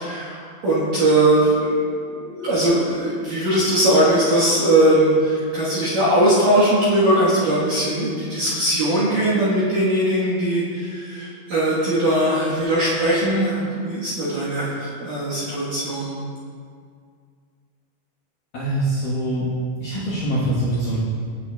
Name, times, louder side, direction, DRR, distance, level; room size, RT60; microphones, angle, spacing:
voice 1, 0.0-1.7 2.1-16.2, right 1 dB, 65° right, -11 dB, 2.2 m, -20 dB
voice 2, 18.5-19.5 19.8-21.0, right 1 dB, 70° left, -10 dB, 2.0 m, -23 dB
9.0 x 8.6 x 2.3 m, 2.1 s
omnidirectional pair, 5.6 m